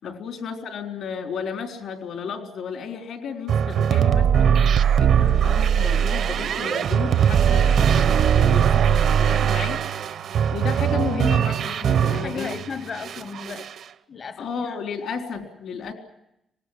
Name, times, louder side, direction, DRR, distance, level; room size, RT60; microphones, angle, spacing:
voice 1, 0.0-4.5 5.0-9.8 10.5-12.6 14.4-15.9, left 6 dB, 75° left, 5 dB, 3.8 m, -33 dB
sound 1, 3.5-12.6 13.0-13.8, right 8 dB, 65° right, 1.0 m, -20 dB
Engine / Tools, 5.7-14.0, right 10 dB, 85° right, 1.9 m, -42 dB
voice 2, 12.1-13.7 14.1-14.8 15.3-15.5 15.7-15.9, left 6 dB, 45° left, 11 dB, 1.1 m, -36 dB
25.0 x 19.5 x 10.0 m, 0.83 s
cardioid pair, 150°, 0 cm